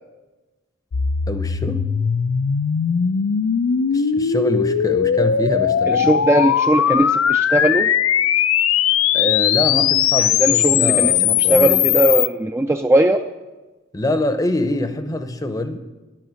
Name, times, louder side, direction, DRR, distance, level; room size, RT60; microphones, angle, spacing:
sound 1, 0.9-12.3, left 8 dB, 80° left, 0.5 m, -19 dB
voice 1, 1.3-1.9 3.9-6.1 9.1-11.9 13.9-15.8, left 1 dB, 15° left, 9 dB, 0.7 m, -24 dB
voice 2, 5.9-7.9 10.2-13.2, right 1 dB, 10° right, 5 dB, 0.3 m, -19 dB
11.0 x 10.5 x 6.3 m, 1.2 s
head